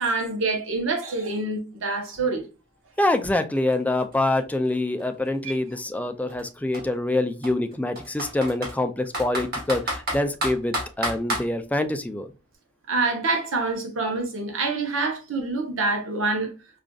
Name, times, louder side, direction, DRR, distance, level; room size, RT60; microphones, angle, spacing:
voice 1, 0.0-2.4 5.4-5.5 12.9-16.5, right 3 dB, 80° right, 0.9 m, -26 dB
voice 2, 3.0-12.3, left 2 dB, 10° left, 0.3 m, -25 dB
Computer keyboard, 3.2-3.3 3.6-5.5 6.3-6.4 6.7-6.8 7.4-8.8 9.1-11.5, right 1 dB, 50° right, 1.6 m, -30 dB
4.9 x 2.4 x 2.3 m
head